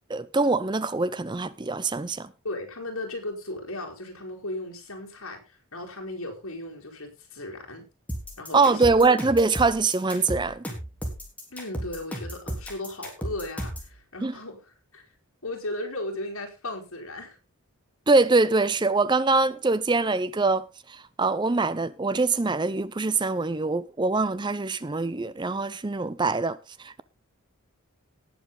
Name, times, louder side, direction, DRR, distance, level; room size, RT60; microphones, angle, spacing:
voice 1, 0.1-2.3 8.5-10.6 14.2-14.3 18.1-27.0, right 3 dB, 20° right, 0.5 m, -24 dB
voice 2, 2.4-7.9 8.4-8.9 11.5-15.1 15.4-17.4, left 1 dB, 75° left, 4.4 m, -36 dB
sound 1, 8.1-13.9, equal, 5° left, 3.4 m, -34 dB
18.5 x 7.4 x 3.9 m
head